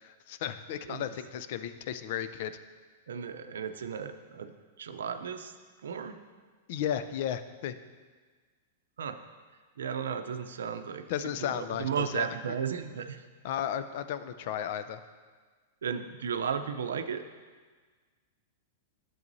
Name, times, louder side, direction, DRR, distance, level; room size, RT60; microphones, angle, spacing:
voice 1, 0.0-2.6 6.7-7.7 11.1-12.3 13.4-15.0, left 10 dB, 60° left, 11 dB, 0.5 m, -34 dB
voice 2, 3.1-4.5 4.8-5.5 5.8-6.2 9.0-9.2 9.8-11.0 11.4-13.2 15.8-17.2, right 7 dB, 85° right, 8 dB, 0.5 m, -34 dB
11.0 x 7.6 x 2.7 m, 1.5 s
hypercardioid pair, 120°, 0 cm